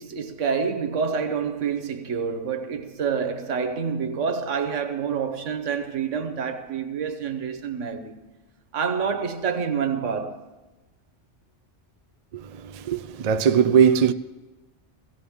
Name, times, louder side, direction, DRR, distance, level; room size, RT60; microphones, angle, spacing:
voice 1, 0.0-8.2 8.7-10.4, right 6 dB, 85° right, 1.3 m, -27 dB
voice 2, 12.3-14.1, right 7 dB, 55° right, 0.4 m, -20 dB
16.5 x 16.0 x 3.6 m
omnidirectional pair, 1.2 m